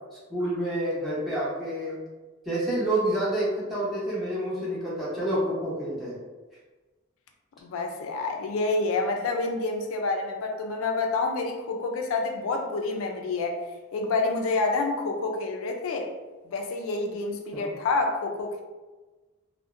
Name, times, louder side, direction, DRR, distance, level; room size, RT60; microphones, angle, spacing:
voice 1, 0.3-2.0 2.5-6.1 17.5-17.7, right 1 dB, ahead, -9 dB, 0.7 m, -28 dB
voice 2, 7.6-13.6 13.9-16.1 16.5-18.6, left 3 dB, 75° left, 3 dB, 0.3 m, -28 dB
2.6 x 2.1 x 2.4 m, 1.2 s
head